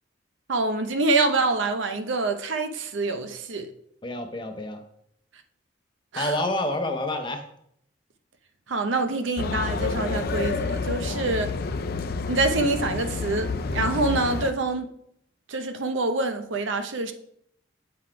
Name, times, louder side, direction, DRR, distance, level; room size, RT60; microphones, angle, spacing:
voice 1, 0.5-3.7 6.1-6.4 8.7-11.5 12.3-14.9 15.5-17.1, right 3 dB, 80° right, 0.7 m, -26 dB
voice 2, 4.0-4.8 6.2-7.4 11.1-11.2, left 1 dB, 25° left, 0.8 m, -28 dB
sound 1, 9.4-14.5, left 4 dB, 50° left, 0.5 m, -29 dB
7.7 x 3.9 x 4.7 m
head